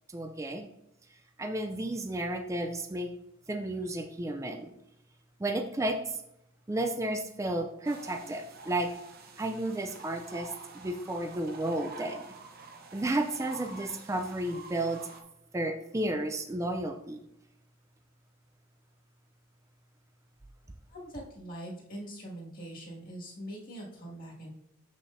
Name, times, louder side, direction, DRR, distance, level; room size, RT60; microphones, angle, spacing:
voice 1, 0.1-0.7 1.4-3.1 3.5-4.7 5.4-6.2 6.7-8.9 9.4-12.3 12.9-15.0 15.5-17.2, right 1 dB, 15° right, 5 dB, 0.4 m, -32 dB
sound 1, 7.8-15.2, right 3 dB, 50° right, 0.8 m, -48 dB
voice 2, 20.9-24.5, right 1 dB, 45° left, -3 dB, 2.0 m, -43 dB
7.8 x 6.3 x 2.6 m, 0.81 s
head